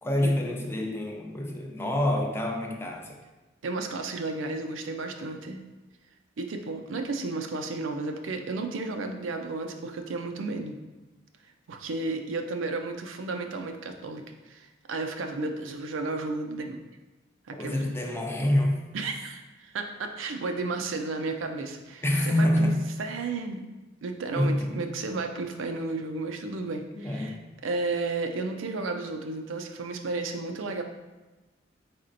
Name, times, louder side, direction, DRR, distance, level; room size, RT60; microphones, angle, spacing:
voice 1, 0.0-3.2 17.6-18.8 22.0-22.8 24.3-24.9 27.0-27.4, left 1 dB, 10° left, 1 dB, 0.5 m, -26 dB
voice 2, 3.6-5.6 6.4-10.8 11.7-14.2 14.5-16.8 17.5-18.0 18.9-22.7 23.0-23.6 24.0-27.3 27.6-30.8, right 3 dB, 80° right, 5 dB, 0.5 m, -33 dB
4.3 x 4.1 x 2.5 m, 1.1 s
head